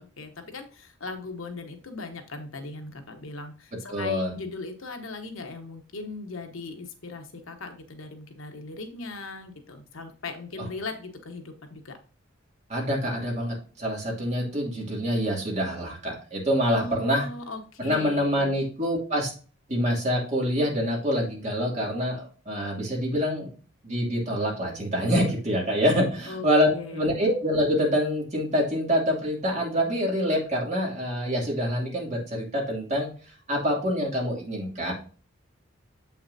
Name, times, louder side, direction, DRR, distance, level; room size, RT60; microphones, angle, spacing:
voice 1, 0.0-12.0 16.7-18.6 26.3-27.3, left 3 dB, 75° left, 5 dB, 1.2 m, -39 dB
voice 2, 3.9-4.3 12.7-17.3 17.8-19.3 19.7-23.5 23.8-33.1 33.5-34.9, equal, 35° right, -2 dB, 2.5 m, -26 dB
7.4 x 5.8 x 2.7 m, 0.37 s
head